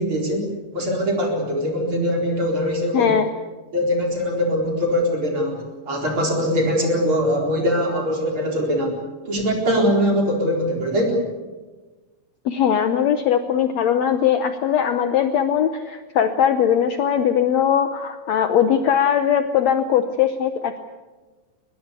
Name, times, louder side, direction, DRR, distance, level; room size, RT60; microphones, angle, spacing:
voice 1, 0.0-3.2 3.7-9.0 9.3-11.3, equal, 35° right, 1 dB, 5.0 m, -22 dB
voice 2, 2.9-3.3 12.5-20.8, left 9 dB, 65° left, 9 dB, 1.8 m, -20 dB
22.5 x 20.5 x 8.4 m, 1.2 s
omnidirectional pair, 3.9 m